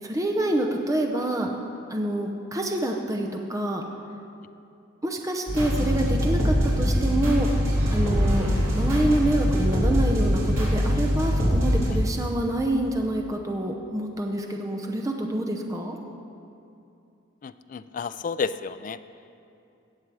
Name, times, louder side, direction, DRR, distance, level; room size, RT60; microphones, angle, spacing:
voice 1, 0.0-1.5 1.9-3.8 5.0-8.5 8.7-16.0, right 1 dB, 15° right, 2 dB, 0.6 m, -27 dB
sound 1, 5.5-11.9, equal, 85° right, 3.3 m, -23 dB
voice 2, 17.4-19.0, left 5 dB, 40° left, 13 dB, 0.3 m, -31 dB
17.5 x 7.3 x 4.7 m, 2.6 s
head